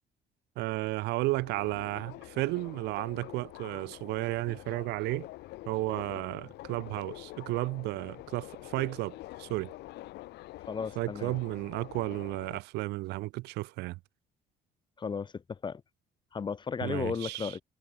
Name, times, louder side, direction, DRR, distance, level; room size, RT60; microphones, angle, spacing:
voice 1, 0.6-5.3 5.7-9.7 11.0-14.0 16.8-17.6, right 21 dB, 85° right, 0.5 m, -33 dB
Subway metro underground, 1.2-12.6, left 18 dB, 85° left, 3.6 m, -46 dB
voice 2, 10.7-11.4 15.0-15.8 16.3-17.6, left 5 dB, 25° left, 0.8 m, -35 dB
cardioid pair, 110°, 17 cm